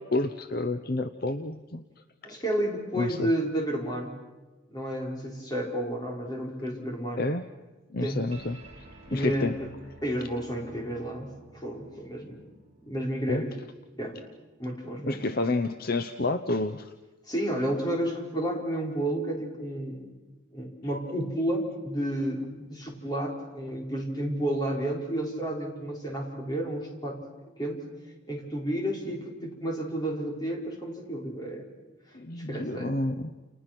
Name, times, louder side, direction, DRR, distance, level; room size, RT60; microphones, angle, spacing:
voice 1, 0.0-1.8 3.0-3.3 7.2-7.4 7.9-8.6 9.1-9.5 13.3-13.4 15.0-16.9 32.1-33.3, left 2 dB, 45° left, 9 dB, 0.8 m, -29 dB
voice 2, 2.2-4.1 4.7-7.3 8.0-8.2 9.1-9.7 10.0-12.4 12.8-13.5 14.0-14.2 14.6-15.2 17.3-20.1 20.5-27.2 27.6-27.8 28.3-31.6 32.5-32.9, right 1 dB, 20° left, -1 dB, 5.0 m, -31 dB
sound 1, 8.3-15.1, right 1 dB, 30° right, 7.2 m, -53 dB
30.0 x 29.5 x 6.1 m, 1.2 s
head